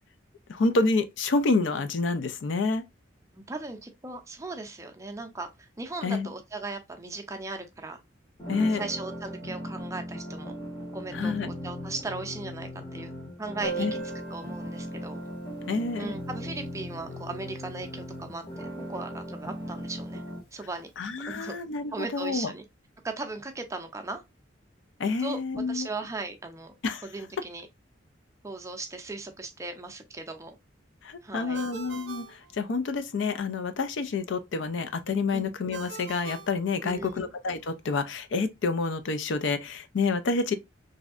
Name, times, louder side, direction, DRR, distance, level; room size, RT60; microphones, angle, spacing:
voice 1, 0.5-2.8 6.0-6.3 8.5-8.8 11.1-11.5 13.8-13.9 15.7-16.1 21.0-22.5 25.0-25.9 26.8-27.0 31.0-32.2 32.5-40.5, left 3 dB, 75° left, 0.4 m, -28 dB
voice 2, 3.3-5.5 5.8-8.0 8.5-10.6 10.9-13.1 13.4-13.9 14.3-15.2 16.0-20.2 20.5-20.9 21.3-21.6 21.9-22.6 23.0-24.2 25.2-26.7 27.0-27.7 28.4-30.5 31.2-31.7 35.3-35.5 36.8-37.3, right 3 dB, 15° right, 0.5 m, -37 dB
sound 1, 8.4-20.4, equal, 20° left, 0.7 m, -38 dB
Piano, 13.6-19.0 19.2-19.3 19.6-19.7 20.0-20.1 20.9-21.1, right 3 dB, 60° left, 1.3 m, -42 dB
Ringtone, 31.5-33.2 35.7-37.4, right 5 dB, 65° right, 0.5 m, -44 dB
3.1 x 2.6 x 2.3 m
head